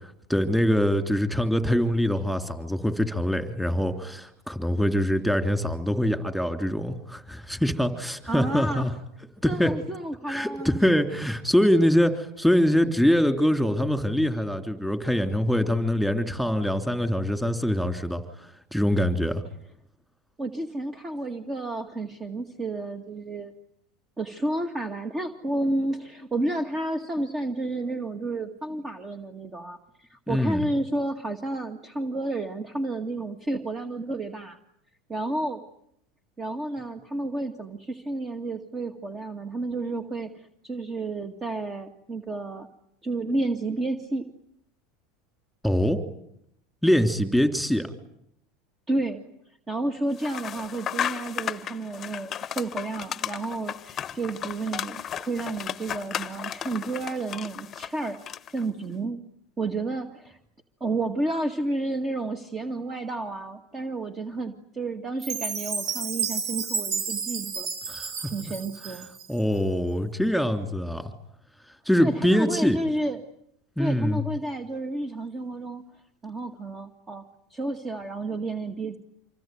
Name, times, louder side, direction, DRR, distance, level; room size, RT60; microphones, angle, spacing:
voice 1, 0.3-8.9 9.4-9.7 10.3-19.4 30.3-30.6 45.6-46.0 46.8-47.9 67.9-68.3 69.3-71.1 71.8-72.8 73.8-74.2, equal, ahead, 7 dB, 3.4 m, -24 dB
voice 2, 8.3-8.9 9.5-10.8 20.4-23.5 24.2-34.6 35.1-35.6 36.4-42.7 43.0-44.3 48.9-49.2 49.7-58.2 58.5-59.2 59.6-60.4 60.8-67.7 68.3-69.1 72.0-73.2 73.8-75.8 76.2-77.2 77.5-79.0, right 2 dB, 20° right, 7 dB, 2.0 m, -31 dB
sound 1, 50.2-58.6, left 9 dB, 30° left, 1.0 m, -34 dB
Chime, 65.2-69.4, right 6 dB, 55° right, 3.3 m, -31 dB
26.5 x 23.5 x 9.4 m, 0.74 s
supercardioid pair, 120°, 0 cm